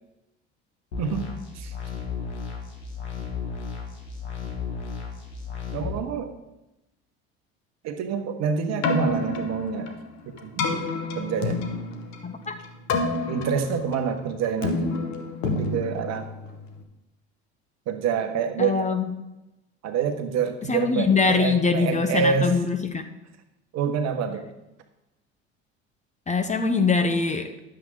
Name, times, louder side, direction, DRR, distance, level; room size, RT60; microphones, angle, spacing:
sound 1, 0.9-5.9, left 5 dB, 80° left, 2.2 m, -34 dB
voice 1, 5.7-6.3 7.8-9.9 10.3-10.9 11.1-11.6 13.3-14.9 15.4-16.3 17.9-18.9 19.8-22.5 23.7-24.4, right 6 dB, 50° right, 7 dB, 1.4 m, -27 dB
Keyboard (musical), 8.7-16.8, left 3 dB, 55° left, 1.5 m, -29 dB
voice 2, 12.2-12.6 18.6-19.1 20.7-23.0 26.3-27.5, left 4 dB, 20° left, 7 dB, 1.0 m, -23 dB
11.0 x 7.7 x 3.9 m, 0.95 s
hypercardioid pair, 70°, 33 cm